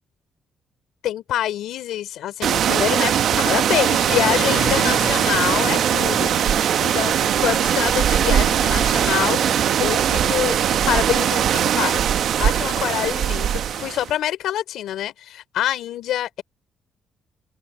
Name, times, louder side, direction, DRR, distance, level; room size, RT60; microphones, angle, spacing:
voice 1, 1.0-9.4 9.8-10.6 10.9-16.4, left 12 dB, 80° left, 4.6 m, -26 dB
sound 1, 2.4-14.1, right 9 dB, 70° right, 0.9 m, -20 dB
sound 2, 4.1-11.0, left 9 dB, 65° left, 4.3 m, -35 dB
open air
cardioid pair, 90°, 0 cm